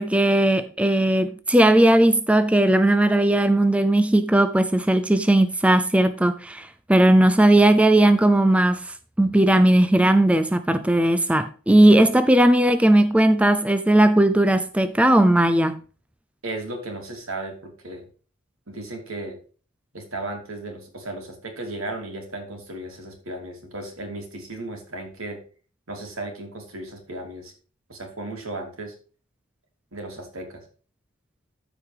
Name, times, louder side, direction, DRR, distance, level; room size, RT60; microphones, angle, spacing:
voice 1, 0.0-15.8, right 1 dB, 5° right, 0.4 m, -18 dB
voice 2, 16.4-18.0 18.7-19.4 19.9-25.4 25.9-27.5 27.9-28.9 29.9-30.6, right 2 dB, 80° right, 3.3 m, -35 dB
14.0 x 5.0 x 3.5 m
head